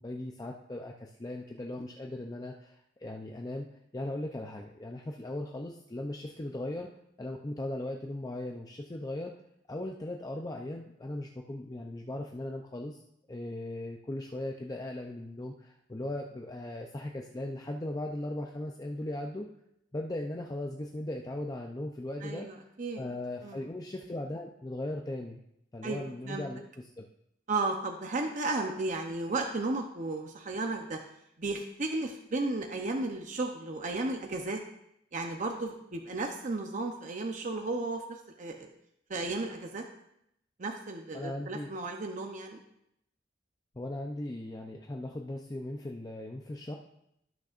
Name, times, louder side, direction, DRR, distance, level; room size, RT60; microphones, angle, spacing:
voice 1, 0.0-3.7 3.9-6.9 7.2-9.3 9.7-13.0 13.3-19.5 19.9-22.5 23.0-25.4 25.7-27.0 41.1-41.7 43.8-46.8, left 1 dB, 20° left, 1 dB, 0.5 m, -38 dB
voice 2, 22.2-23.0 23.4-23.6 25.8-26.4 27.5-31.0 31.4-34.6 35.1-38.0 38.4-38.7 39.1-39.8 40.6-42.6, right 2 dB, 40° right, 3 dB, 0.8 m, -34 dB
17.0 x 6.4 x 2.5 m, 0.77 s
head